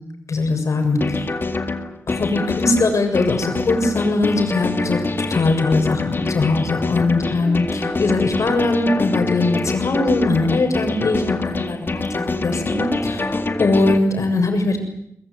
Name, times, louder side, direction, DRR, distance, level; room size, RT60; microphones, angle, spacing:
voice 1, 0.3-1.3 2.1-14.8, left 3 dB, 70° left, 6 dB, 7.0 m, -21 dB
sound 1, 1.0-14.0, left 3 dB, 40° left, 2.2 m, -25 dB
sound 2, 7.2-13.8, right 1 dB, 10° right, 3.3 m, -36 dB
23.5 x 22.0 x 9.6 m, 0.75 s
wide cardioid pair, 115°, 6 cm